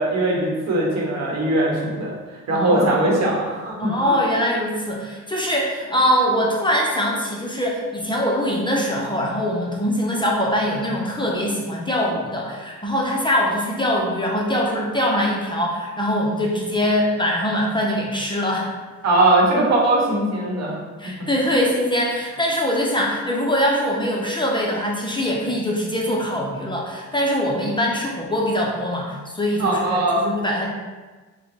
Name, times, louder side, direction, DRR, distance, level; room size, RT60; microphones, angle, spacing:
voice 1, 0.0-2.1 2.5-4.2 19.0-20.7 29.6-30.3, right 2 dB, 60° right, -2 dB, 1.0 m, -20 dB
voice 2, 2.5-3.3 3.8-18.7 21.0-30.7, equal, 15° left, -2 dB, 0.5 m, -23 dB
3.6 x 2.1 x 3.2 m, 1.3 s
cardioid pair, 90°, 30 cm